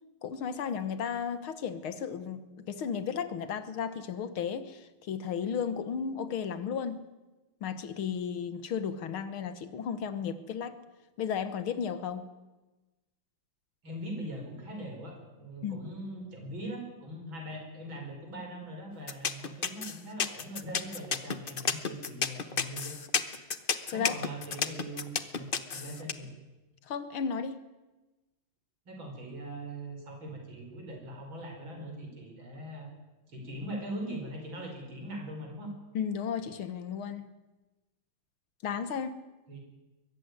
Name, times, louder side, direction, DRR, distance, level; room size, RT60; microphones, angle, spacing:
voice 1, 0.2-7.0 7.6-10.8 11.2-12.3 15.6-15.8 23.9-24.2 26.9-27.7 35.9-37.3 38.6-39.2, left 7 dB, 80° left, 12 dB, 2.1 m, -34 dB
voice 2, 13.8-23.0 23.9-26.3 28.9-32.9 33.3-35.7 39.5-39.6, right 1 dB, 65° right, 2 dB, 5.9 m, -41 dB
sound 1, 19.1-26.1, left 6 dB, 40° left, 0.8 m, -31 dB
22.5 x 14.5 x 9.7 m, 1.1 s
omnidirectional pair, 2.3 m